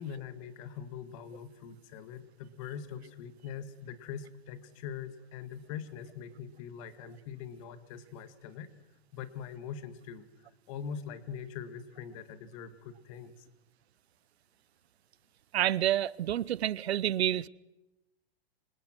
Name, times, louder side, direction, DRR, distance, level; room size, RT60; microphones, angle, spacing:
voice 1, 0.0-8.7 9.1-10.3 10.7-13.3, left 7 dB, 30° left, 2.0 m, -42 dB
voice 2, 15.5-17.5, right 12 dB, 80° right, 0.9 m, -28 dB
28.5 x 26.0 x 6.2 m
supercardioid pair, 175°, 32 cm